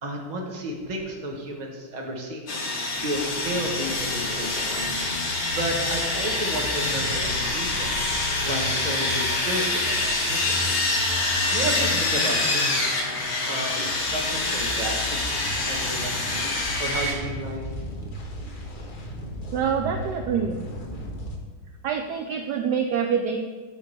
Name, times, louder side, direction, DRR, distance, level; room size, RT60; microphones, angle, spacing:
voice 1, 0.0-2.7 3.0-4.8 5.5-8.0 8.4-10.8 11.5-12.8 13.4-16.5 16.8-17.7, right 1 dB, 30° right, 0 dB, 0.9 m, -32 dB
Sawing, 2.5-17.1, left 2 dB, 65° left, 2.0 m, -26 dB
sound 1, 3.1-21.4, left 1 dB, 40° left, 0.7 m, -36 dB
voice 2, 19.5-20.6 21.8-23.4, right 7 dB, 80° right, 4 dB, 0.9 m, -26 dB
9.2 x 3.7 x 6.7 m, 1.5 s
omnidirectional pair, 2.3 m